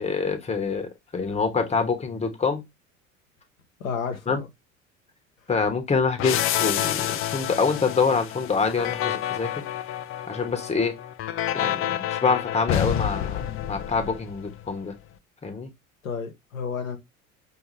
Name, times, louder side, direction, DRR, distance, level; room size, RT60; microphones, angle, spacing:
voice 1, 0.0-2.6 4.3-4.4 5.5-9.5 10.3-11.0 11.5-13.4 13.7-14.9 15.4-15.7, left 5 dB, 15° left, 1.1 m, -26 dB
voice 2, 3.8-4.5 16.0-17.0, left 6 dB, 80° left, 1.0 m, -31 dB
sound 1, 6.2-14.7, left 11 dB, 35° left, 0.5 m, -28 dB
5.3 x 2.8 x 3.2 m
figure-of-eight pair, 70°, 40 cm